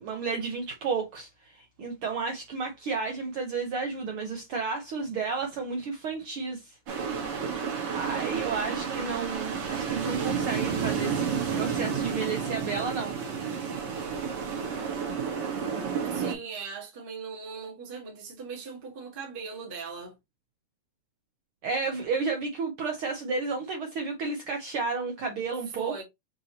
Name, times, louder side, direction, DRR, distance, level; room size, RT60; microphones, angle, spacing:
voice 1, 0.0-6.8 7.9-11.2 11.5-13.2 21.6-25.9, right 4 dB, 85° right, 1.1 m, -32 dB
sound 1, 6.9-16.3, right 6 dB, 55° right, 1.4 m, -31 dB
voice 2, 16.1-20.1 25.7-26.0, right 5 dB, 35° right, 0.8 m, -39 dB
6.7 x 2.8 x 2.8 m
omnidirectional pair, 3.6 m